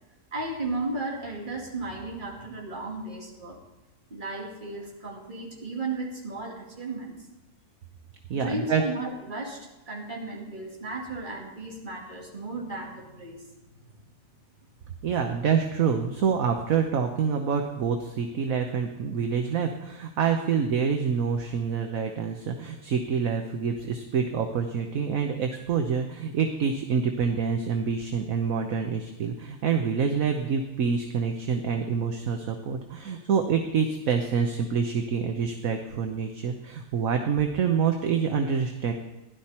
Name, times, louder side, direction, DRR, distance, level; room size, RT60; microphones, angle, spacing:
voice 1, 0.3-3.6 4.1-7.2 8.3-14.0 15.0-15.1, right 2 dB, 30° right, -1 dB, 2.6 m, -35 dB
voice 2, 8.3-8.8 15.0-38.9, right 6 dB, 60° right, 4 dB, 1.3 m, -27 dB
16.0 x 11.5 x 4.4 m, 1.0 s
omnidirectional pair, 1.7 m